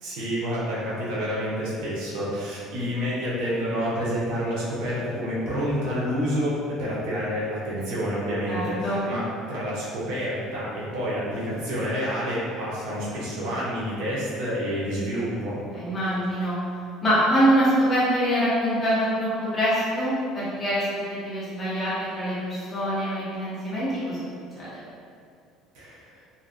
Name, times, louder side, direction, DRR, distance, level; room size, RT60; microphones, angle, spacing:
voice 1, 0.0-15.6 25.7-26.2, equal, 75° right, -7 dB, 0.7 m, -28 dB
voice 2, 8.5-9.0 15.7-16.6 17.0-24.8, equal, 15° left, -10 dB, 0.8 m, -25 dB
2.5 x 2.2 x 2.4 m, 2.3 s
cardioid pair, 155°, 0 cm